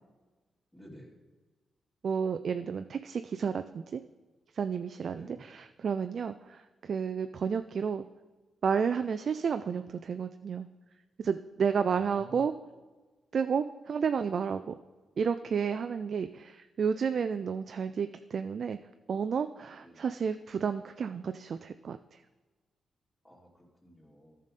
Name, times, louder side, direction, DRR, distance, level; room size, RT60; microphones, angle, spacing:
voice 1, 0.7-1.1 5.1-5.4 11.7-12.4 19.8-20.0 23.2-24.4, equal, 15° left, -8 dB, 2.9 m, -53 dB
voice 2, 2.0-4.0 4.5-8.0 8.6-10.7 11.2-12.5 13.3-14.7 15.2-18.8 19.1-22.0, right 6 dB, 60° right, 9 dB, 0.3 m, -31 dB
13.5 x 5.2 x 4.2 m, 1.3 s
hypercardioid pair, 40°, 0 cm